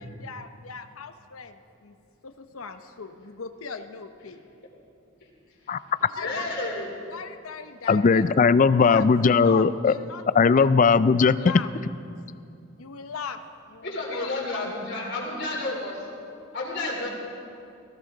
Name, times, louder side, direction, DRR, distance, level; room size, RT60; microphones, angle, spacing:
voice 1, 0.0-2.0 2.2-4.4 6.1-6.7 7.1-8.2 8.8-9.1 9.4-10.7 11.4-11.7 12.8-13.4 13.7-14.6, left 5 dB, 85° left, 9 dB, 0.8 m, -39 dB
voice 2, 6.2-6.9 11.6-11.7 13.8-16.0 16.5-17.1, left 2 dB, 55° left, -2 dB, 3.7 m, -31 dB
voice 3, 7.9-9.9 10.4-11.4, left 5 dB, 40° left, 15 dB, 0.4 m, -18 dB
19.0 x 16.5 x 3.9 m, 2.5 s
head